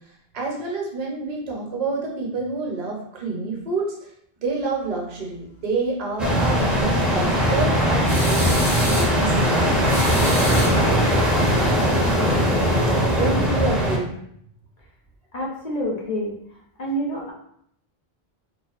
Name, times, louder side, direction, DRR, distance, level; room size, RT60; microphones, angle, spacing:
voice 1, 0.3-3.9 4.4-9.8 13.2-14.1, right 3 dB, 45° right, -2 dB, 0.6 m, -28 dB
sound 1, 6.2-14.0, equal, ahead, 0.3 m, -20 dB
sound 2, 8.1-9.2 9.9-11.1, left 1 dB, 80° left, 1.1 m, -29 dB
voice 2, 15.3-16.3 16.8-17.3, equal, 50° left, -3 dB, 0.6 m, -27 dB
2.5 x 2.2 x 2.3 m, 0.69 s
omnidirectional pair, 1.0 m